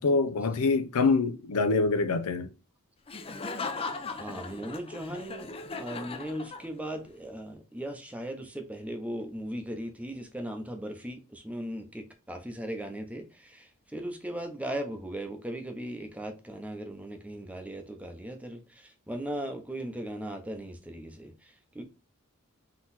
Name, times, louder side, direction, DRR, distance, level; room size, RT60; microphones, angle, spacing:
voice 1, 0.0-2.5, left 3 dB, 90° left, 0.5 m, -25 dB
Laughter, 3.1-7.0, left 3 dB, 25° left, 0.5 m, -38 dB
voice 2, 4.1-13.7 13.9-21.3 21.7-21.8, right 1 dB, 5° right, 0.7 m, -38 dB
3.9 x 3.0 x 4.1 m
head